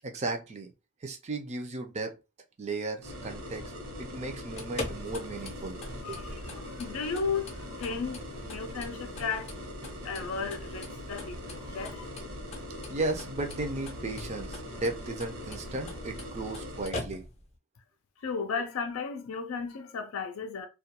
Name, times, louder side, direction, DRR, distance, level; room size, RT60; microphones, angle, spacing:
voice 1, 0.0-0.7 1.0-2.2 2.6-3.7 4.0-5.8 6.1-6.2 12.9-17.2, right 2 dB, 35° right, 0.4 m, -35 dB
sound 1, 3.0-16.9, equal, 70° right, 0.9 m, -41 dB
sound 2, 4.4-17.6, left 2 dB, 30° left, 0.5 m, -44 dB
voice 2, 6.0-9.5 10.0-12.1 18.2-20.7, left 5 dB, 85° left, 0.4 m, -35 dB
2.3 x 2.2 x 2.8 m
head